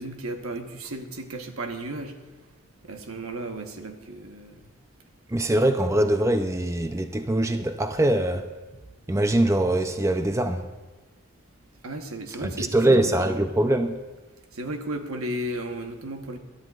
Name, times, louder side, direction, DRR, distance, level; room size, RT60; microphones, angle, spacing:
voice 1, 0.0-2.2 2.8-4.7 11.8-13.4 14.5-16.4, right 1 dB, 80° right, 1.1 m, -34 dB
voice 2, 5.3-8.4 9.1-10.6 12.4-14.0, right 1 dB, 15° right, 0.4 m, -23 dB
20.5 x 12.0 x 2.4 m
head